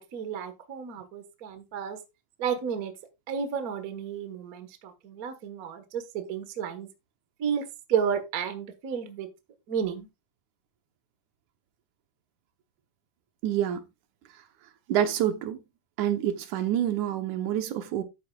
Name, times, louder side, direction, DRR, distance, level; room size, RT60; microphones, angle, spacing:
voice 1, 0.0-2.0 2.4-2.9 3.3-6.9 7.4-9.3 9.7-10.1, right 7 dB, 40° right, 1.3 m, -32 dB
voice 2, 13.4-13.8 14.9-15.6 16.0-18.0, right 10 dB, 75° right, 2.4 m, -27 dB
12.5 x 8.7 x 2.4 m
omnidirectional pair, 3.5 m